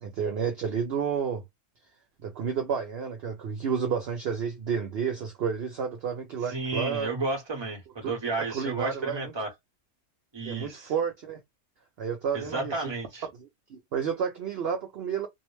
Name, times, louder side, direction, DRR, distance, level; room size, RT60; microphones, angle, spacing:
voice 1, 0.0-1.4 2.2-7.1 8.0-8.1 8.4-9.3 10.5-11.4 12.0-12.7 13.4-15.3, right 7 dB, 60° right, 0.7 m, -31 dB
voice 2, 6.4-9.5 10.3-10.9 12.3-13.2, right 3 dB, 20° right, 0.9 m, -32 dB
2.7 x 2.0 x 3.0 m
omnidirectional pair, 1.5 m